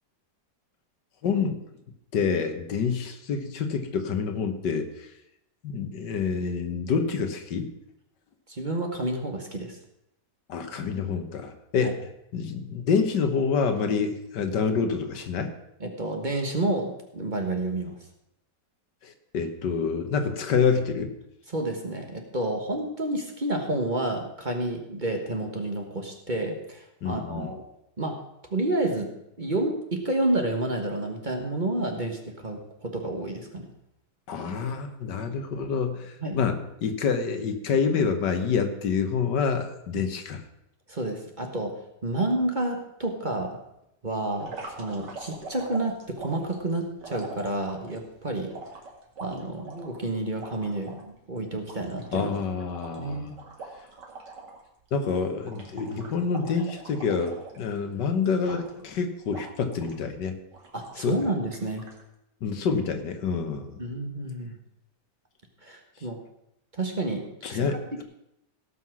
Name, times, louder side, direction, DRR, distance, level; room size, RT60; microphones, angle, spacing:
voice 1, 1.2-1.6 2.1-5.1 5.6-7.7 10.5-12.1 12.3-15.5 19.0-21.1 27.0-27.5 34.3-40.4 52.1-53.3 54.9-60.4 61.0-61.3 62.4-63.8 67.4-68.0, left 5 dB, 80° left, 7 dB, 1.8 m, -27 dB
voice 2, 8.5-9.8 11.8-11.9 15.8-17.9 21.5-27.6 28.0-28.2 28.5-29.1 29.4-33.7 36.2-36.4 39.9-40.0 40.9-43.6 44.0-48.5 49.2-52.3 53.0-53.3 60.7-61.9 63.8-64.6 65.6-66.2 66.7-67.2 67.5-68.0, right 2 dB, 30° right, 3 dB, 1.4 m, -30 dB
sound 1, 44.4-48.0 48.5-51.0 51.4-51.5 51.7-54.6 54.9-55.1 55.4-57.9 58.4-59.0 59.3-60.0 60.5-61.1 61.5-62.0, right 3 dB, 80° right, 2.7 m, -43 dB
17.5 x 5.8 x 6.2 m, 0.81 s
omnidirectional pair, 1.8 m